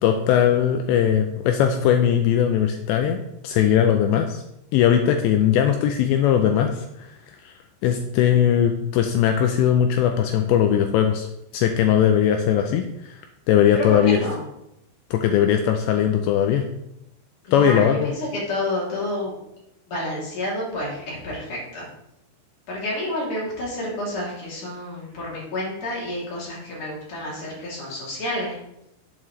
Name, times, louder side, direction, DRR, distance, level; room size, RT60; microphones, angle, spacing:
voice 1, 0.0-3.2 3.4-4.4 4.7-7.5 7.8-11.3 11.5-13.2 13.5-14.2 15.1-16.7 17.5-18.1, left 9 dB, 85° left, 5 dB, 2.6 m, -19 dB
voice 2, 13.7-14.4 17.4-19.3 19.9-21.9 22.7-28.6, left 1 dB, 45° left, -5 dB, 3.9 m, -29 dB
11.0 x 8.5 x 3.3 m, 0.84 s
omnidirectional pair, 5.7 m